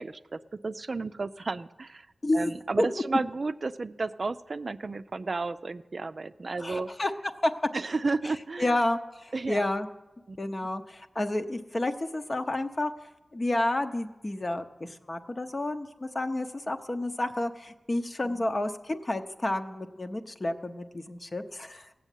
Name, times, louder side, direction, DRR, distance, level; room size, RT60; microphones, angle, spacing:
voice 1, 0.0-2.1 2.3-6.9 7.7-8.8 9.3-9.7 10.3-10.4 18.2-18.5, right 3 dB, 55° right, 11 dB, 0.4 m, -32 dB
voice 2, 2.2-2.5 2.8-2.9 6.6-7.1 7.4-7.5 8.6-9.9 10.4-12.9 13.3-21.9, left 1 dB, 40° left, 7 dB, 0.9 m, -30 dB
16.5 x 7.1 x 9.2 m, 1.1 s
wide cardioid pair, 75°, 0 cm